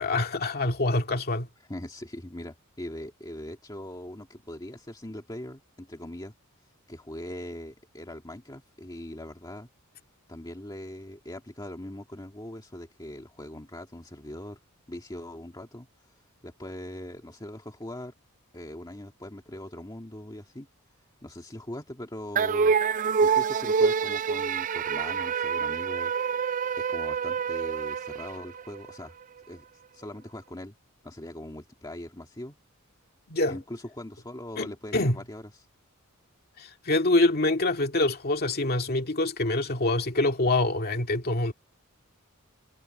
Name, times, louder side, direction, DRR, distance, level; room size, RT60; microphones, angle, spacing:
voice 1, 0.0-1.5 33.3-33.6 34.6-35.2 36.6-41.5, left 2 dB, 45° left, 2.2 m, -25 dB
voice 2, 1.7-6.3 6.9-9.7 10.3-14.6 14.9-15.9 16.4-18.1 18.5-20.7 21.2-22.8 23.2-26.1 26.8-29.2 29.5-29.6 29.9-30.7 31.0-32.6 33.5-35.7, left 1 dB, 20° left, 1.8 m, -41 dB
sound 1, 22.4-28.9, right 6 dB, 35° right, 0.4 m, -26 dB
head